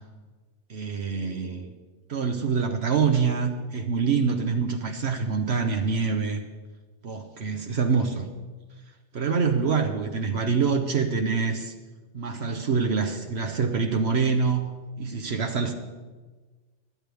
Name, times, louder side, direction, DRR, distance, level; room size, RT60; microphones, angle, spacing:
voice 1, 0.7-1.7 2.1-6.4 7.0-8.3 9.1-11.7 12.1-14.6 15.0-15.7, right 5 dB, 65° right, 5 dB, 1.2 m, -25 dB
23.0 x 9.8 x 3.5 m, 1.3 s
omnidirectional pair, 1.2 m